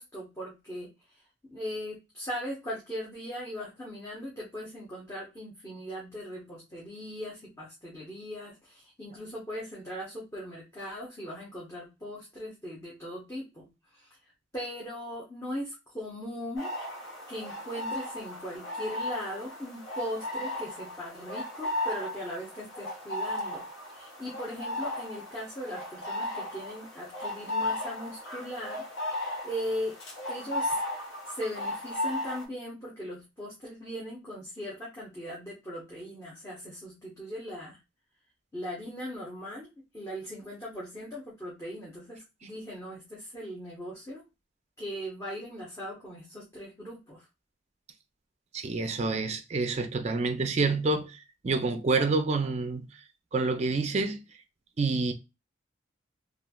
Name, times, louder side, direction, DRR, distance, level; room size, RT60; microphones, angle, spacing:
voice 1, 0.0-14.2 14.5-16.7 17.3-23.6 23.9-28.8 29.4-30.0 30.3-30.8 31.3-37.8 38.5-39.7 39.9-44.2 44.8-47.3, equal, 15° left, 0.8 m, -39 dB
sound 1, 16.6-32.4, left 1 dB, 75° left, 1.0 m, -35 dB
voice 2, 48.5-51.2 51.4-52.9 53.3-54.2 54.8-55.1, right 3 dB, 35° right, 0.4 m, -27 dB
3.1 x 2.4 x 2.2 m
head